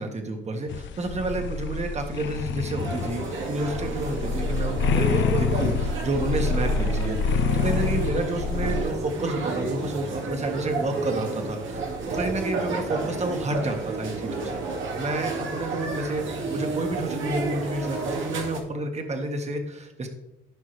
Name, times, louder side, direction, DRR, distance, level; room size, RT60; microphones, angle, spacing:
voice 1, 0.0-11.8 12.1-14.6 15.0-20.1, right 2 dB, 35° right, 4 dB, 1.6 m, -30 dB
sound 1, 0.7-8.8, left 5 dB, 70° left, 0.7 m, -27 dB
sound 2, 2.8-18.6, right 3 dB, 80° right, 2.3 m, -31 dB
15.5 x 5.5 x 3.3 m, 0.88 s
cardioid pair, 90°, 20 cm